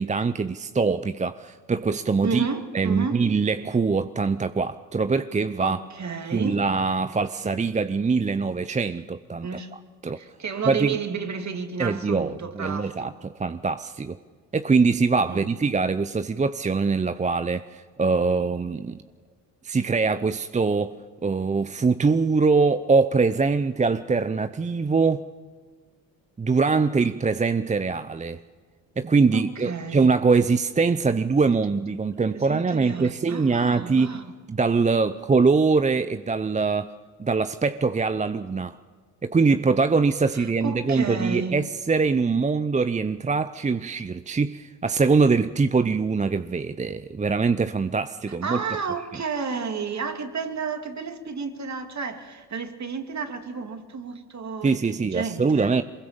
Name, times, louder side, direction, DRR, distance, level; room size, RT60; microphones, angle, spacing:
voice 1, 0.0-2.5 2.7-5.8 6.3-9.5 10.0-10.2 10.7-11.0 11.8-14.2 14.5-19.0 19.6-25.3 26.4-28.4 29.0-34.2 34.5-36.9 37.2-38.8 39.2-48.6 54.6-55.8, right 4 dB, 15° right, 0.6 m, -23 dB
voice 2, 2.2-3.2 5.6-6.6 9.4-9.7 10.1-13.1 15.3-15.7 29.3-30.1 32.1-34.3 40.3-41.6 48.3-55.8, right 5 dB, 40° right, 2.5 m, -32 dB
23.5 x 21.5 x 7.3 m
supercardioid pair, 60°, 42 cm